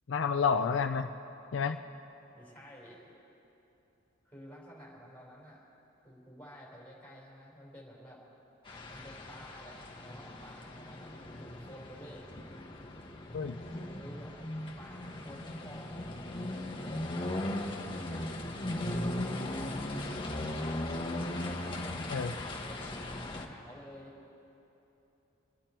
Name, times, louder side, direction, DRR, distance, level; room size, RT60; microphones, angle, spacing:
voice 1, 0.1-1.1 1.5-1.8 13.3-13.6 22.1-22.3, left 6 dB, 65° left, 8 dB, 0.4 m, -29 dB
voice 2, 2.3-3.2 4.2-5.7 6.0-8.2 8.9-12.3 13.9-14.3 14.8-16.2 17.7-18.3 18.6-19.5 20.0-21.1 21.6-23.0 23.3-24.1, equal, 5° left, -4 dB, 4.0 m, -52 dB
sound 1, 8.7-23.5, left 1 dB, 25° left, 1.2 m, -38 dB
26.0 x 10.5 x 4.5 m, 3.0 s
head